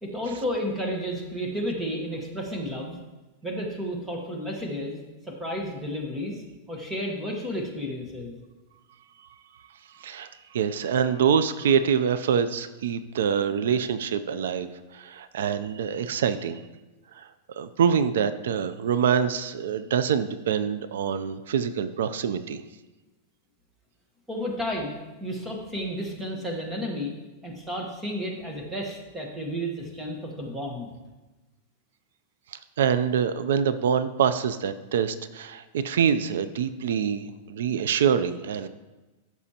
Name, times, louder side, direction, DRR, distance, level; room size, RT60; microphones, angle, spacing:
voice 1, 0.0-3.0 3.4-4.9 5.2-8.3 24.3-27.1 27.4-30.9, equal, 10° right, 0 dB, 1.2 m, -32 dB
voice 2, 10.0-16.6 17.1-22.6 32.5-38.7, right 7 dB, 85° right, 13 dB, 0.4 m, -25 dB
13.5 x 6.0 x 2.9 m, 1.1 s
supercardioid pair, 175°, 0 cm